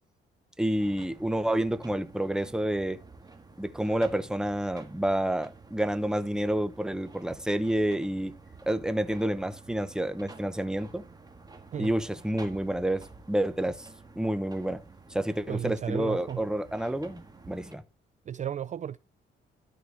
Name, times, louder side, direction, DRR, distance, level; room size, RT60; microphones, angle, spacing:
voice 1, 0.6-3.0 3.6-8.4 8.7-11.0 11.8-13.9 14.2-14.8 15.1-17.8, right 1 dB, 5° right, 0.9 m, -29 dB
sound 1, 0.7-17.8, right 3 dB, 20° right, 1.5 m, -51 dB
voice 2, 15.5-16.4 18.3-19.0, right 9 dB, 40° right, 0.4 m, -34 dB
12.5 x 4.6 x 3.3 m
cardioid pair, 90°, 20 cm